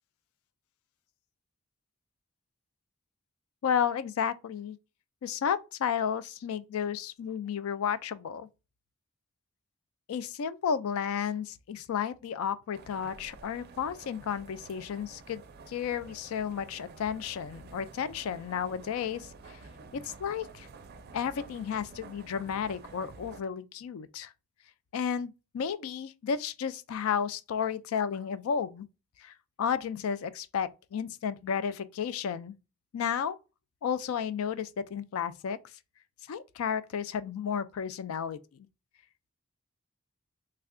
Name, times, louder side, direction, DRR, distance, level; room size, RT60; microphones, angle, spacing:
voice 1, 3.6-4.8 5.2-8.5 10.1-15.4 15.7-19.3 19.9-20.7 21.1-24.3 24.9-28.9 29.2-29.3 29.6-32.6 32.9-33.4 33.8-35.6 36.3-38.4, left 7 dB, 75° left, 0.3 m, -32 dB
sound 1, 12.7-23.4, right 4 dB, 50° right, 0.4 m, -50 dB
3.3 x 2.2 x 3.6 m
head